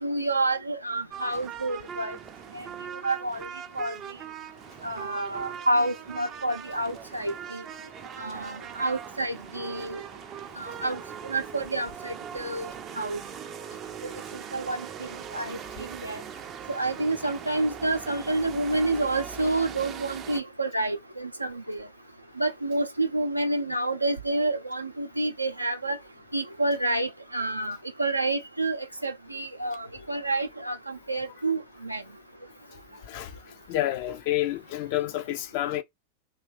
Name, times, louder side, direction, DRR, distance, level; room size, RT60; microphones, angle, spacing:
voice 1, 0.0-2.2 2.5-2.7 3.0-3.5 3.8-3.9 4.8-7.6 8.2-10.0 10.6-12.7 13.0-13.2 14.0-14.1 14.5-16.2 16.7-21.9 22.4-26.0 26.3-32.0, right 2 dB, 85° right, 0.5 m, -29 dB
sound 1, 1.1-20.4, right 8 dB, 30° right, 0.4 m, -41 dB
voice 2, 33.7-35.8, left 14 dB, 45° left, 0.5 m, -29 dB
2.9 x 2.8 x 3.3 m
figure-of-eight pair, 90°, 0 cm